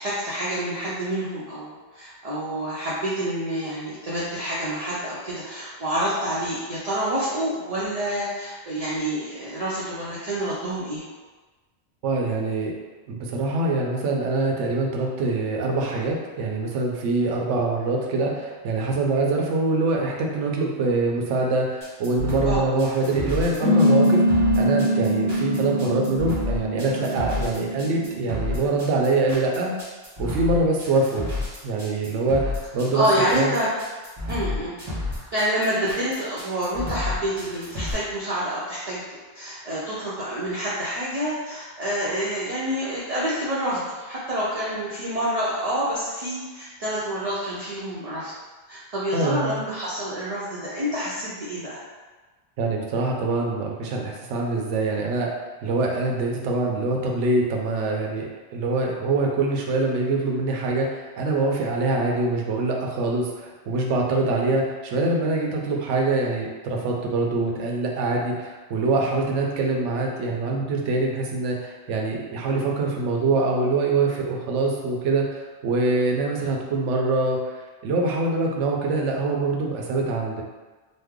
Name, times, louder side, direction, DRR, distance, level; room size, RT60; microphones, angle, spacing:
voice 1, 0.0-11.0 22.4-22.6 32.9-33.7 34.3-35.0 35.3-48.3 48.7-51.8, equal, 45° right, -8 dB, 0.5 m, -28 dB
voice 2, 12.0-12.7 13.1-29.7 30.2-31.3 31.6-33.1 33.3-33.5 49.1-49.6 52.6-55.3 55.6-77.4 77.8-80.4, right 3 dB, 75° right, 0 dB, 0.9 m, -24 dB
sound 1, 21.8-37.9, left 2 dB, 25° right, 0.8 m, -31 dB
sound 2, 23.6-28.6, equal, 30° left, 0.5 m, -22 dB
3.1 x 2.0 x 3.5 m, 1.3 s
omnidirectional pair, 1.2 m